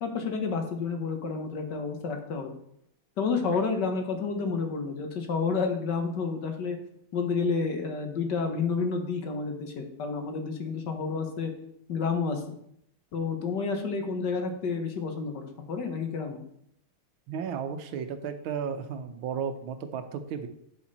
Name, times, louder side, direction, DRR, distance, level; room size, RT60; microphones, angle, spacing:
voice 1, 0.0-2.5 3.2-6.8 7.1-11.5 11.9-12.4 13.1-16.4, left 4 dB, 60° left, 5 dB, 1.7 m, -30 dB
voice 2, 17.3-20.5, right 7 dB, 80° right, 8 dB, 1.6 m, -34 dB
8.7 x 7.2 x 4.1 m, 0.73 s
omnidirectional pair, 2.3 m